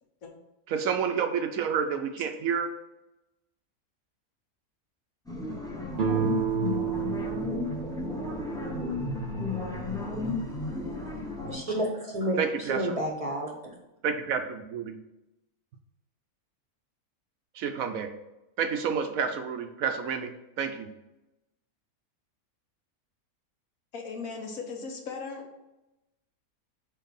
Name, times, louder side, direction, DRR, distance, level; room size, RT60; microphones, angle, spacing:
voice 1, 0.7-2.7 12.4-13.0 14.0-15.0 17.5-18.1 18.6-20.9, right 6 dB, 70° right, 7 dB, 1.0 m, -29 dB
sound 1, 5.3-11.6, left 3 dB, 5° left, 0.8 m, -33 dB
sound 2, 5.9-9.6, right 9 dB, 50° right, 0.6 m, -31 dB
voice 2, 11.5-13.7, equal, 30° right, 0 dB, 0.9 m, -31 dB
voice 3, 23.9-25.6, left 4 dB, 70° left, 2 dB, 1.4 m, -38 dB
4.6 x 4.6 x 5.3 m, 0.94 s
omnidirectional pair, 1.6 m